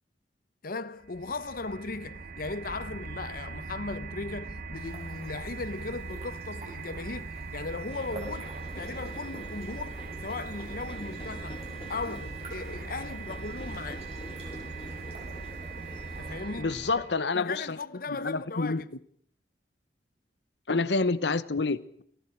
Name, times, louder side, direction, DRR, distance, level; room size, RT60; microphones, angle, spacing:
voice 1, 0.6-11.6 11.9-14.1 16.2-17.0 17.3-18.9, left 3 dB, 55° left, 0.9 m, -37 dB
sound 1, 1.0-17.2, right 4 dB, 55° right, 1.1 m, -40 dB
sound 2, 4.7-16.3, right 1 dB, 35° right, 7.9 m, -50 dB
sound 3, 7.9-16.6, left 1 dB, 30° left, 1.5 m, -46 dB
voice 2, 16.6-17.8 18.1-18.8 20.7-22.0, left 3 dB, 85° left, 1.1 m, -28 dB
29.0 x 23.5 x 4.6 m
head